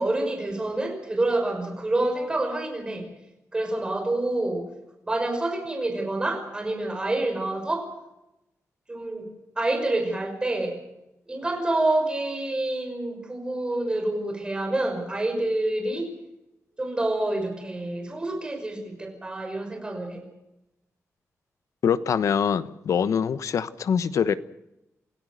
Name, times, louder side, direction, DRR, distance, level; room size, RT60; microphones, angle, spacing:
voice 1, 0.0-3.1 3.5-4.7 5.1-7.9 8.9-9.3 9.6-10.8 11.3-16.1 16.8-20.2, right 2 dB, 15° right, 3 dB, 5.9 m, -27 dB
voice 2, 21.8-24.3, left 7 dB, 70° left, 14 dB, 1.1 m, -24 dB
28.0 x 16.5 x 6.6 m, 0.91 s
wide cardioid pair, 180°, 6 cm